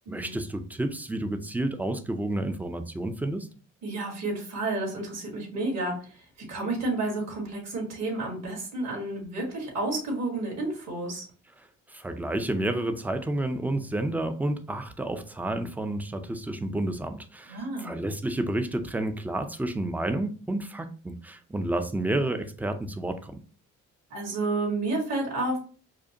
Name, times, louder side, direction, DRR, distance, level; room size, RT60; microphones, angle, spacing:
voice 1, 0.1-3.5 11.9-23.4, right 1 dB, 5° right, 8 dB, 0.4 m, -30 dB
voice 2, 3.8-11.3 17.5-17.9 24.1-25.6, right 2 dB, 60° right, -1 dB, 1.9 m, -31 dB
4.9 x 2.1 x 2.8 m, 0.40 s
cardioid pair, 90°, 30 cm